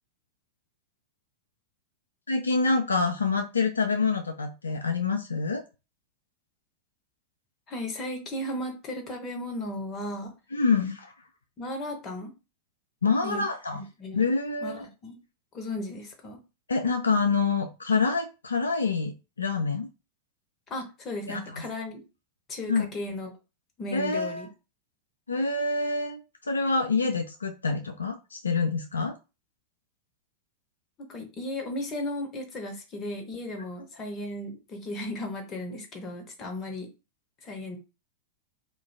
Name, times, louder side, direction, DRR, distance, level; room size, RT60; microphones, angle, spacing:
voice 1, 2.3-5.6 10.5-11.1 13.0-13.8 14.1-14.9 16.7-19.9 21.3-21.6 22.7-22.9 23.9-24.5 25.3-29.2, left 4 dB, 75° left, 4 dB, 0.3 m, -26 dB
voice 2, 7.7-10.3 11.6-12.3 13.2-13.4 13.7-14.2 14.6-15.2 15.5-16.4 20.7-22.0 22.5-23.3 23.8-24.5 31.0-36.9 37.4-37.8, left 1 dB, 25° left, 4 dB, 0.8 m, -35 dB
2.5 x 2.2 x 3.2 m, 0.29 s
figure-of-eight pair, 90°, 0 cm